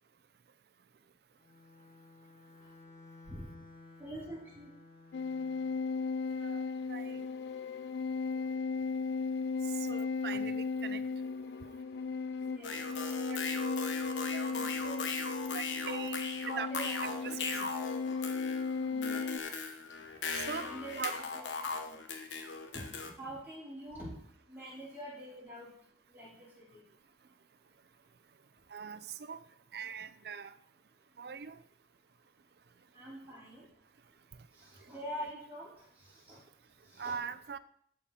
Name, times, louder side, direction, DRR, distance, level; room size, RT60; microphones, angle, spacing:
Bowed string instrument, 1.4-5.9, left 3 dB, 45° left, 1.5 m, -56 dB
voice 1, 4.0-4.7 8.3-8.5 12.4-12.8 14.4-15.0 16.5-16.9 18.8-19.4 20.6-22.0 22.7-22.8 23.2-24.2 24.5-25.7 26.1-26.8 32.9-33.7 34.6-35.7 36.3-36.4 36.9-37.2, right 1 dB, 10° right, -8 dB, 4.3 m, -45 dB
sound 1, 5.1-19.4, left 4 dB, 70° left, 0.3 m, -36 dB
voice 2, 6.3-7.3 9.6-11.0 11.6-11.8 13.1-13.4 14.3-14.5 15.5-16.2 16.5-16.7 17.0-17.8 20.1-20.7 21.0-21.1 28.7-29.5 29.7-30.6 31.2-31.6 34.3-34.5 34.8-35.0 37.0-37.6, right 6 dB, 60° right, 13 dB, 0.5 m, -42 dB
sound 2, 12.6-23.1, left 4 dB, 90° left, 1.1 m, -39 dB
12.5 x 5.2 x 4.3 m, 0.65 s
head